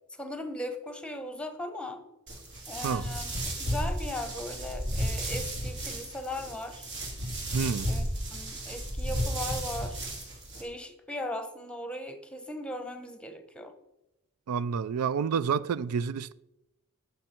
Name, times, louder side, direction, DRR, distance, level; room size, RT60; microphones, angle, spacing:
voice 1, 0.2-2.0 2.7-3.3 3.6-6.8 7.9-8.0 8.3-10.0 10.6-13.7, left 1 dB, 5° left, 1.0 m, -38 dB
sound 1, 2.3-10.6, equal, 55° right, 2.5 m, -33 dB
voice 2, 7.5-7.9 14.5-16.3, right 6 dB, 90° right, 0.4 m, -29 dB
12.0 x 7.0 x 4.4 m
head